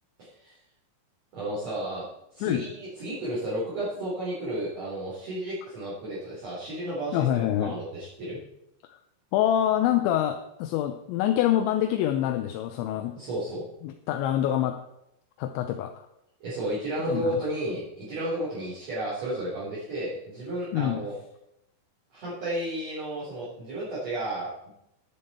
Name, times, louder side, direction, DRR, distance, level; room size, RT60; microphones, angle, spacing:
voice 1, 0.2-0.6 1.3-2.1 2.3-8.4 13.1-13.6 16.4-21.1 22.1-24.7, right 1 dB, 40° right, -10 dB, 4.5 m, -32 dB
voice 2, 7.1-7.7 8.9-9.0 9.3-13.1 13.8-14.8 15.4-16.1 17.1-17.4 20.7-21.0, left 11 dB, 85° left, 6 dB, 3.0 m, -26 dB
11.0 x 10.5 x 4.3 m, 0.82 s
omnidirectional pair, 5.3 m